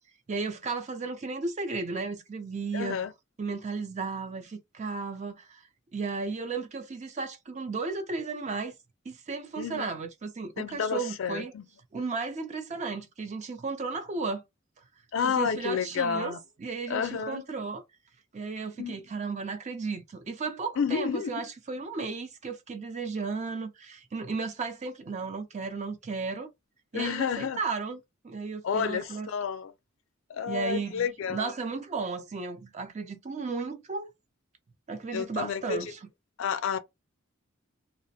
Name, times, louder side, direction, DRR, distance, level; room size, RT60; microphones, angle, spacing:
voice 1, 0.3-3.0 3.4-8.7 9.1-11.5 11.9-14.4 15.2-17.8 18.3-26.5 26.9-29.3 30.5-34.1 34.9-36.0, right 4 dB, 35° right, 0.4 m, -34 dB
voice 2, 2.7-3.1 9.6-9.9 10.6-11.7 15.1-16.4 16.9-17.4 18.8-19.0 20.8-21.3 26.9-27.6 28.6-29.7 30.3-31.5 35.1-35.8 36.4-36.8, left 6 dB, 65° left, 0.4 m, -30 dB
2.4 x 2.0 x 2.7 m
head